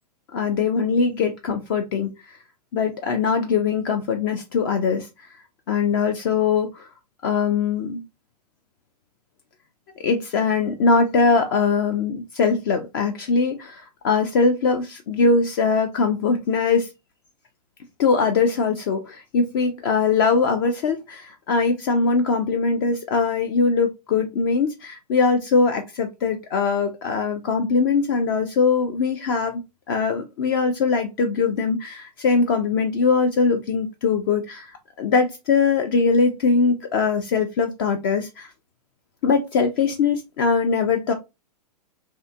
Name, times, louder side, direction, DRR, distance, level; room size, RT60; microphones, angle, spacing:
voice 1, 0.3-2.1 2.7-5.1 5.7-6.9 7.2-8.0 10.0-16.9 18.0-29.6 29.9-34.7 35.0-38.5 39.2-41.1, left 4 dB, 35° left, 6 dB, 0.4 m, -21 dB
2.6 x 2.4 x 2.3 m, 0.23 s
figure-of-eight pair, 105°, 21 cm